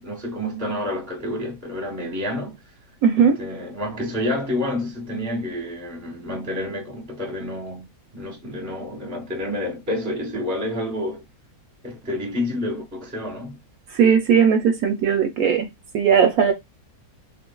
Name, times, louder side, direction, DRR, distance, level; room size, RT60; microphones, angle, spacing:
voice 1, 0.0-2.6 3.2-11.3 11.8-13.6, left 1 dB, 15° right, 0.8 m, -29 dB
voice 2, 3.0-3.4 13.9-16.5, right 7 dB, 70° right, 1.0 m, -18 dB
3.7 x 2.5 x 2.2 m
omnidirectional pair, 1.7 m